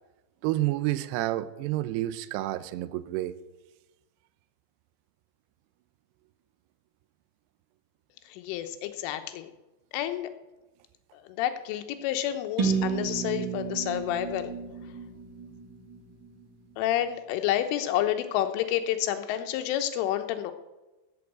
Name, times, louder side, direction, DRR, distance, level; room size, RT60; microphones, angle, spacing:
voice 1, 0.4-3.4, right 15 dB, 90° right, 13 dB, 2.4 m, -29 dB
voice 2, 8.4-9.5 9.9-10.3 11.4-14.5 16.8-20.5, left 12 dB, 85° left, 8 dB, 3.5 m, -29 dB
sound 1, 12.6-16.4, right 6 dB, 50° right, 1.4 m, -32 dB
14.0 x 7.0 x 8.1 m, 1.1 s
omnidirectional pair, 5.6 m